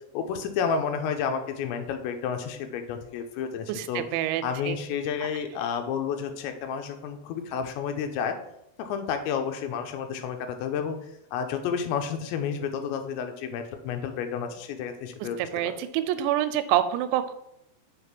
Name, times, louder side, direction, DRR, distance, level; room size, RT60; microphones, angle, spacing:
voice 1, 0.1-4.0 4.4-8.4 8.8-11.0 11.3-15.7, left 7 dB, 85° left, 6 dB, 3.0 m, -31 dB
voice 2, 3.7-4.8 15.5-17.3, right 12 dB, 85° right, 11 dB, 2.8 m, -27 dB
7.0 x 4.0 x 5.9 m, 0.80 s
omnidirectional pair, 5.1 m